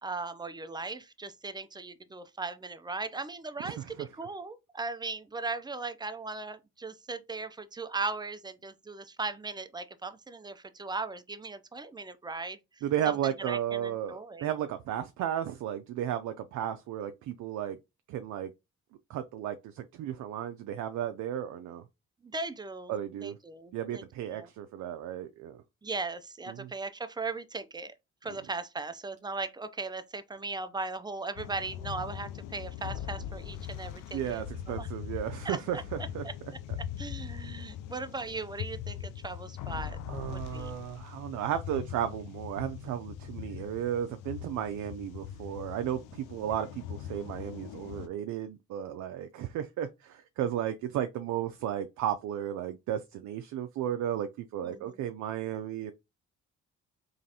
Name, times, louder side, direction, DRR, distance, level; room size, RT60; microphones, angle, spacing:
voice 1, 0.0-12.6 13.1-14.5 22.2-24.0 24.3-24.5 25.8-27.9 28.2-34.9 35.4-36.3 37.0-40.0 40.3-40.7 54.6-55.0, right 3 dB, 15° right, 0.4 m, -38 dB
voice 2, 12.8-17.8 18.1-18.5 19.1-21.8 22.9-23.4 23.7-25.6 26.5-26.7 34.1-36.2 40.1-55.9, right 10 dB, 75° right, 0.5 m, -34 dB
sound 1, 31.4-48.1, left 9 dB, 90° left, 0.6 m, -41 dB
3.9 x 3.1 x 2.8 m
cardioid pair, 90°, 30 cm